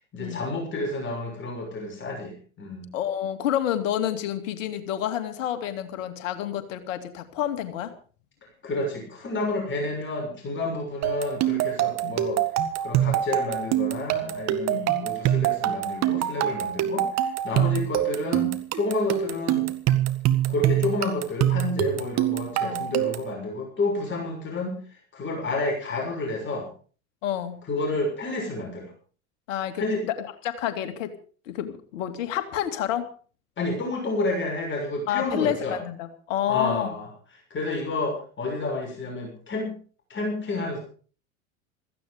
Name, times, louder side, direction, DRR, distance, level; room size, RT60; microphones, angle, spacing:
voice 1, 0.0-2.9 8.6-12.4 12.8-19.7 20.5-24.8 25.1-26.7 27.7-28.9 29.8-30.0 33.6-35.8 36.4-37.1 37.5-39.8 40.1-40.8, left 2 dB, 30° left, 0 dB, 6.6 m, -30 dB
voice 2, 2.9-7.9 12.0-12.1 14.7-15.1 17.5-17.8 22.6-22.9 27.2-27.6 29.5-30.1 30.4-31.1 31.5-33.0 35.1-36.9, left 11 dB, 65° left, 8 dB, 2.5 m, -29 dB
sound 1, 11.0-23.3, right 12 dB, 40° right, 1.9 m, -25 dB
16.5 x 15.0 x 5.1 m, 0.41 s
hypercardioid pair, 90°, 41 cm